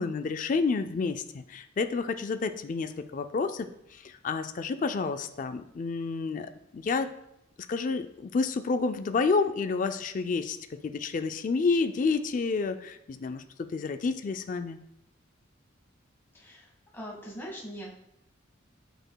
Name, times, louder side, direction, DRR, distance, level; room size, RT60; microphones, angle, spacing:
voice 1, 0.0-3.7 4.0-7.1 7.7-10.6 10.8-13.4 13.7-14.8, left 4 dB, 40° left, 9 dB, 0.3 m, -29 dB
voice 2, 16.3-18.0, equal, 10° left, -3 dB, 1.4 m, -42 dB
8.0 x 6.0 x 2.2 m, 0.80 s
head